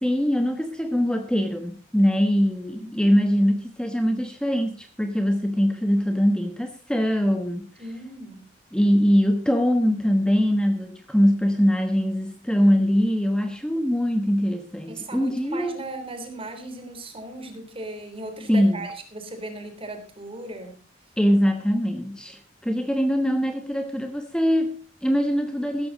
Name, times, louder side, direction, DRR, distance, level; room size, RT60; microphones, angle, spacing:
voice 1, 0.0-7.7 8.7-15.8 18.5-18.8 21.2-25.9, equal, 5° left, 5 dB, 1.1 m, -22 dB
voice 2, 7.8-8.5 14.9-20.8, right 2 dB, 30° right, 6 dB, 3.5 m, -37 dB
15.5 x 14.0 x 4.0 m, 0.37 s
head